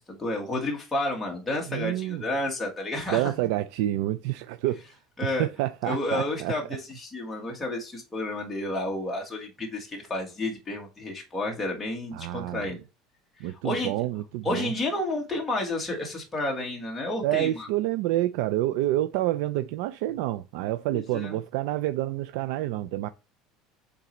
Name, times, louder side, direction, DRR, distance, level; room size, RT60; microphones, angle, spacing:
voice 1, 0.1-3.3 5.2-5.5 5.8-12.8 13.4-14.0 14.4-17.7 20.9-21.4, left 2 dB, 10° left, 1.4 m, -31 dB
voice 2, 1.7-2.2 3.1-4.8 5.2-6.5 12.1-12.6 13.4-14.7 17.2-23.1, right 15 dB, 70° right, 0.4 m, -28 dB
8.4 x 4.0 x 3.1 m
cardioid pair, 175°, 0 cm